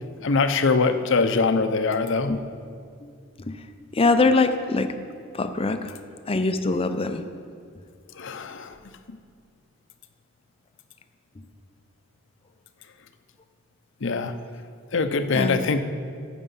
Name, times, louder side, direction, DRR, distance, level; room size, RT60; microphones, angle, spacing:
voice 1, 0.2-2.3 8.2-8.7 14.0-14.3 14.9-15.9, left 4 dB, 65° left, 9 dB, 0.7 m, -23 dB
voice 2, 3.9-4.9 5.3-5.9 6.3-7.2 15.3-15.6, left 3 dB, 30° left, 9 dB, 0.6 m, -22 dB
14.0 x 6.2 x 5.5 m, 2.2 s
head